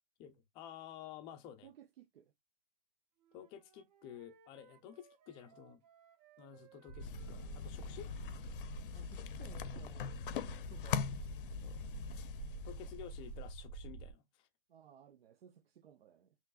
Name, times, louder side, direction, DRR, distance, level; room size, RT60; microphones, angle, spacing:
voice 1, 0.2-1.7 3.3-5.8 6.4-8.1 11.6-11.8 12.6-14.5, left 10 dB, 15° left, 0.4 m, -52 dB
voice 2, 1.6-2.3 8.2-8.3 8.9-11.2 14.7-16.4, right 9 dB, 75° right, 0.7 m, -59 dB
Wind instrument woodwind instrument, 3.2-8.4, right 7 dB, 45° right, 0.8 m, -66 dB
sound 1, 6.9-14.1, right 4 dB, 25° right, 1.4 m, -48 dB
sound 2, 7.0-13.5, left 8 dB, 60° left, 0.6 m, -42 dB
5.8 x 3.1 x 2.3 m
hypercardioid pair, 150°, 30 cm